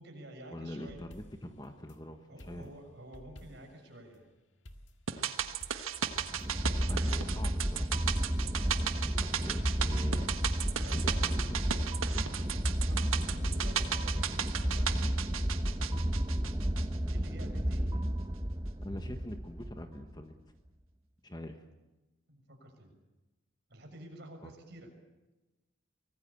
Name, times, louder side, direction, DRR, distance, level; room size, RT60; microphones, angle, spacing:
voice 1, 0.0-1.0 2.3-4.4 10.7-15.6 17.1-17.9 22.3-22.9 23.7-24.9, right 1 dB, 55° right, 3 dB, 6.7 m, -50 dB
voice 2, 0.5-2.2 2.5-2.7 6.9-7.9 8.8-10.4 10.9-12.3 18.8-20.4 21.2-21.6 24.4-24.5, left 1 dB, 20° left, 7 dB, 1.4 m, -44 dB
sound 1, 0.8-2.0 2.4-3.8 4.6-6.5 6.9-7.2, equal, 65° left, 2.0 m, -53 dB
sound 2, 5.1-17.4 17.7-17.8, right 8 dB, 85° right, 1.5 m, -36 dB
sound 3, 6.0-20.2, equal, 15° right, 1.0 m, -32 dB
24.5 x 20.0 x 8.5 m, 1.1 s
head